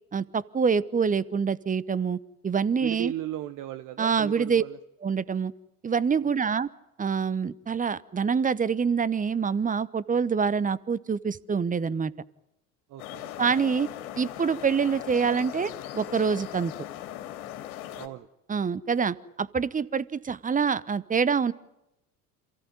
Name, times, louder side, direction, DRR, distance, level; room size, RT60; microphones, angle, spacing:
voice 1, 0.1-2.2 2.4-3.1 4.0-4.6 5.0-5.5 5.8-6.7 7.0-12.1 13.4-13.9 14.2-16.7 18.5-21.5, right 6 dB, 20° right, 19 dB, 0.9 m, -26 dB
voice 2, 2.8-4.8 12.9-13.3 17.9-18.3, right 13 dB, 45° right, 13 dB, 1.0 m, -36 dB
sound 1, 13.0-18.1, left 13 dB, 65° left, 2.6 m, -39 dB
27.5 x 15.0 x 9.7 m, 0.89 s
figure-of-eight pair, 70°, 45 cm